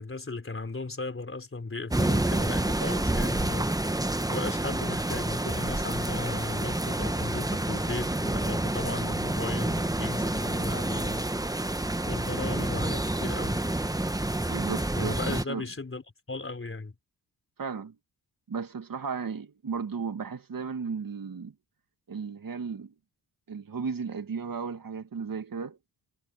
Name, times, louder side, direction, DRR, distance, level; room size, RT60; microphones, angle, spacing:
voice 1, 0.0-3.8 4.3-11.3 12.1-13.6 15.0-17.0, left 3 dB, 30° left, 4.2 m, -36 dB
sound 1, 1.9-15.4, right 1 dB, 10° right, 1.2 m, -28 dB
voice 2, 14.5-15.6 17.6-17.9 18.5-21.5 22.1-22.9 23.5-25.8, right 5 dB, 50° right, 2.3 m, -35 dB
cardioid pair, 60°, 43 cm